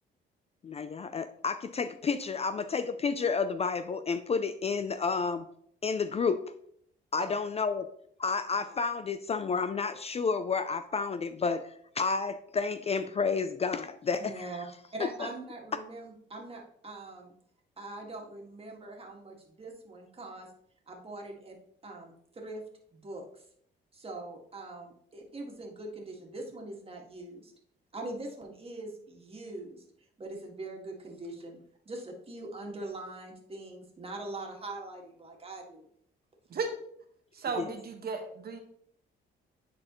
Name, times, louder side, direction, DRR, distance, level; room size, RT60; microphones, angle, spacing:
voice 1, 0.6-5.5 5.8-6.4 7.1-7.9 8.2-11.6 12.0-14.5 15.0-15.3 37.6-37.7, left 5 dB, 30° left, 11 dB, 0.4 m, -30 dB
voice 2, 14.2-14.7 14.9-17.3 17.8-20.5 20.9-21.6 21.8-22.6 22.9-23.4 23.9-27.5 27.9-29.8 30.2-31.6 31.9-35.9, right 2 dB, 30° right, 0 dB, 1.9 m, -42 dB
voice 3, 37.3-38.6, right 4 dB, 50° right, 5 dB, 1.1 m, -35 dB
9.9 x 4.2 x 3.0 m, 0.68 s
cardioid pair, 90°, 20 cm